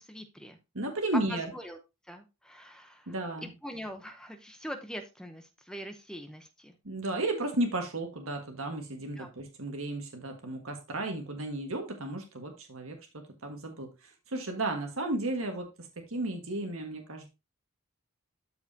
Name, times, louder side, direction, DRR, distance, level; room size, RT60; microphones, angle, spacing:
voice 1, 0.0-0.6 1.3-1.8 2.1-3.1 3.6-6.8 9.2-9.3, equal, 5° left, 6 dB, 0.8 m, -43 dB
voice 2, 0.7-1.5 3.1-3.5 6.8-17.3, right 2 dB, 80° right, 3 dB, 1.6 m, -34 dB
13.0 x 4.7 x 2.8 m, 0.26 s
head